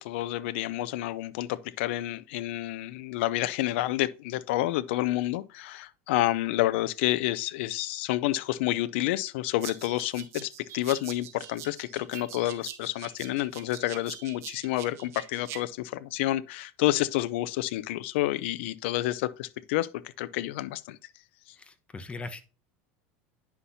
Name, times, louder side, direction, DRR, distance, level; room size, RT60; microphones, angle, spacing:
voice 1, 0.0-19.9 20.2-21.0, left 15 dB, 75° left, 0.5 m, -29 dB
sound 1, 9.6-15.6, right 11 dB, 45° right, 1.3 m, -44 dB
voice 2, 21.6-22.4, left 3 dB, 20° left, 1.0 m, -40 dB
9.7 x 5.7 x 2.7 m
supercardioid pair, 115°, 6 cm